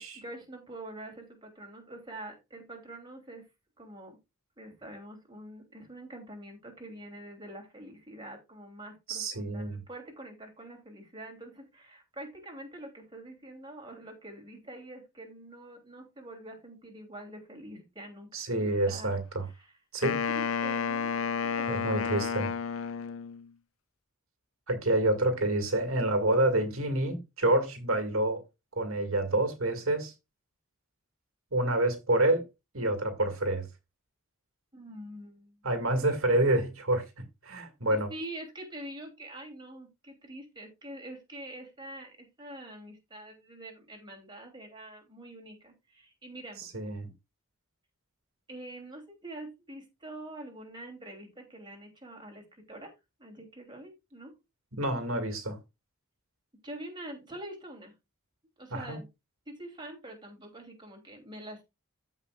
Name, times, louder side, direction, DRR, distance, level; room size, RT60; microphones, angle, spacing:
voice 1, 0.0-3.5 3.8-4.2 4.6-18.5 18.9-19.1 19.5-19.7 20.3-21.1 21.4-21.9 34.7-35.7 37.9-46.7 48.5-52.9 53.2-54.3 56.6-57.9 58.6-59.1 59.5-61.6, right 1 dB, 20° right, 2.9 m, -45 dB
voice 2, 9.1-9.8 18.3-19.5 19.9-20.2 21.7-22.5 24.7-28.4 28.8-30.1 31.5-32.4 32.7-33.7 35.6-37.1 37.4-38.1 46.6-47.1 54.8-55.6 58.7-59.0, right 1 dB, 75° right, 2.1 m, -28 dB
Wind instrument woodwind instrument, 20.0-23.5, left 6 dB, 65° left, 0.5 m, -31 dB
14.5 x 5.4 x 2.4 m
head